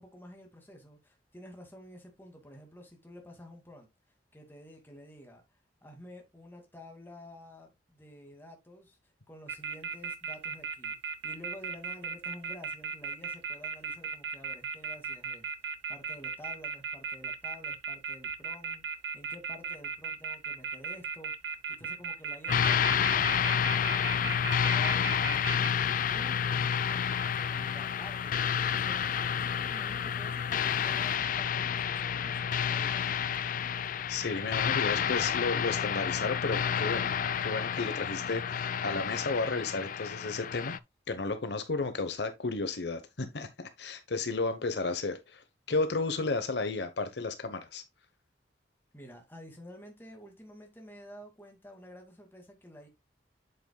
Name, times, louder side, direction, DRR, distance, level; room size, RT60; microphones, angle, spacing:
voice 1, 0.0-3.9 4.3-5.4 5.8-23.6 24.4-33.6 48.9-52.9, equal, 10° left, 2.1 m, -50 dB
sound 1, 9.5-25.7, right 5 dB, 65° right, 0.7 m, -36 dB
sound 2, 22.5-40.8, left 8 dB, 50° left, 0.4 m, -30 dB
voice 2, 34.1-37.1 37.4-40.8 41.1-47.8, left 3 dB, 65° left, 0.9 m, -33 dB
8.0 x 7.8 x 2.2 m
head